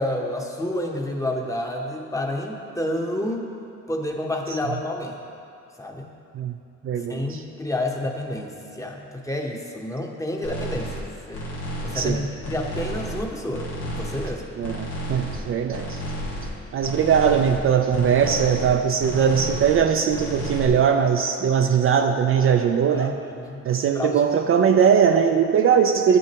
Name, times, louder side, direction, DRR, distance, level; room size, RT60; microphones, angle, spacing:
voice 1, 0.0-3.5 3.9-5.2 5.8-6.1 7.1-11.4 11.8-14.4 22.9-24.2, left 1 dB, 10° left, 1 dB, 0.9 m, -29 dB
voice 2, 6.8-7.4 11.9-12.2 14.6-16.0 16.7-23.1 23.6-26.2, right 7 dB, 45° right, 5 dB, 0.4 m, -20 dB
sound 1, 10.4-11.0 11.3-12.1 12.4-13.2 13.5-14.3 14.6-15.4 15.7-16.5 16.8-17.6 17.9-18.7 19.0-19.8 20.1-20.7, equal, 85° left, 1.7 m, -32 dB
11.5 x 6.3 x 2.9 m, 2.5 s
cardioid pair, 90°, 30 cm